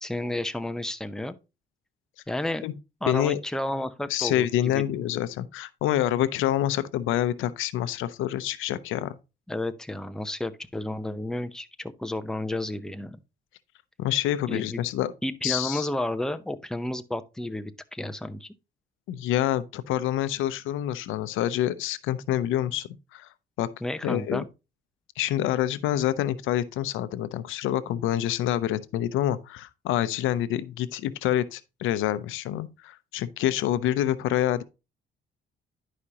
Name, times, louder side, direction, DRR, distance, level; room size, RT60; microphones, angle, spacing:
voice 1, 0.0-1.3 2.3-2.6 3.0-4.8 9.5-13.2 14.5-14.8 15.2-18.5 23.8-24.5, left 1 dB, 5° left, 0.7 m, -31 dB
voice 2, 3.0-3.4 4.1-9.2 14.0-15.1 15.4-15.9 19.1-23.3 23.6-23.7 24.0-24.4 25.2-34.6, left 12 dB, 90° left, 0.6 m, -27 dB
11.0 x 5.0 x 2.8 m
cardioid pair, 90°, 20 cm